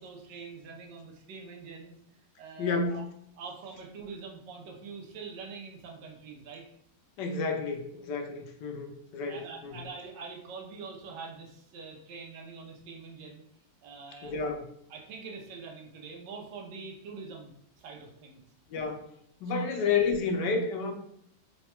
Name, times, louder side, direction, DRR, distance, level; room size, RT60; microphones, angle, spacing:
voice 1, 0.0-2.0 2.4-3.0 3.4-6.7 9.3-13.4 13.8-14.4 14.9-18.4 19.5-19.8, right 4 dB, 90° right, 0 dB, 1.4 m, -44 dB
voice 2, 2.6-3.0 7.2-9.9 14.2-14.7 18.7-19.1 19.4-20.9, left 4 dB, 80° left, 4 dB, 1.3 m, -30 dB
4.0 x 2.2 x 4.3 m, 0.70 s
omnidirectional pair, 1.9 m